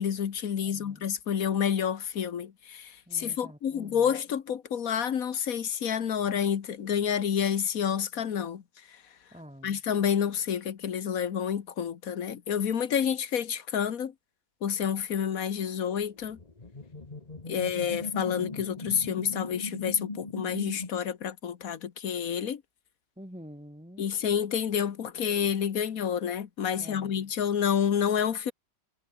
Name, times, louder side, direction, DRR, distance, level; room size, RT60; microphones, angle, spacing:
voice 1, 0.0-8.6 9.6-14.1 14.6-16.4 17.5-22.6 24.0-28.5, left 8 dB, 60° left, 1.6 m, -29 dB
voice 2, 0.6-1.1 3.1-4.1 9.3-9.8 17.5-18.0 23.2-24.1 26.7-27.3, equal, 5° right, 2.4 m, -48 dB
sound 1, 15.8-20.9, left 3 dB, 25° left, 1.8 m, -39 dB
omnidirectional pair, 1.8 m